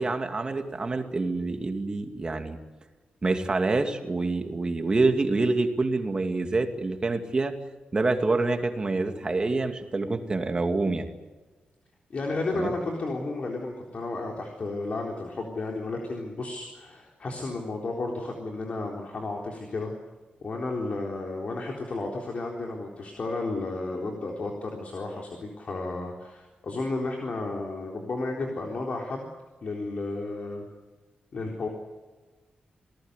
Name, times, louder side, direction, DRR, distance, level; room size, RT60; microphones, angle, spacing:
voice 1, 0.0-2.6 3.2-7.5 7.9-11.1 12.5-12.7, right 3 dB, 25° right, 5 dB, 2.5 m, -26 dB
voice 2, 12.1-19.9 20.4-29.3 29.6-30.7 31.3-31.7, left 2 dB, 45° left, 0 dB, 3.9 m, -32 dB
28.0 x 19.0 x 8.3 m, 1.2 s
wide cardioid pair, 150°, 3 cm